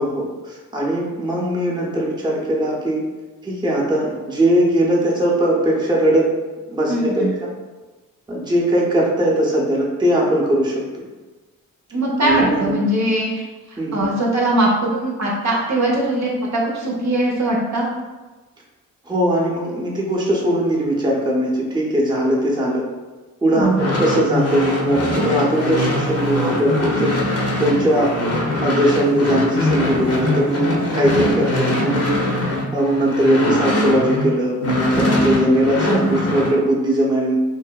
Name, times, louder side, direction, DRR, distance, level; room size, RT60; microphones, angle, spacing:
voice 1, 0.0-3.0 3.4-6.3 6.7-7.5 8.3-11.0 12.2-12.8 13.8-14.1 19.1-22.8 23.4-27.2 27.6-28.1 28.6-32.3 32.7-37.4, right 1 dB, 15° right, -4 dB, 0.6 m, -19 dB
voice 2, 6.9-7.3 11.9-17.9 23.5-23.9 35.8-36.1, right 1 dB, 55° right, -4 dB, 0.6 m, -21 dB
sound 1, 23.6-34.3 34.6-36.5, left 1 dB, 45° left, 0.7 m, -22 dB
2.7 x 2.0 x 2.2 m, 1.3 s
supercardioid pair, 45°, 35 cm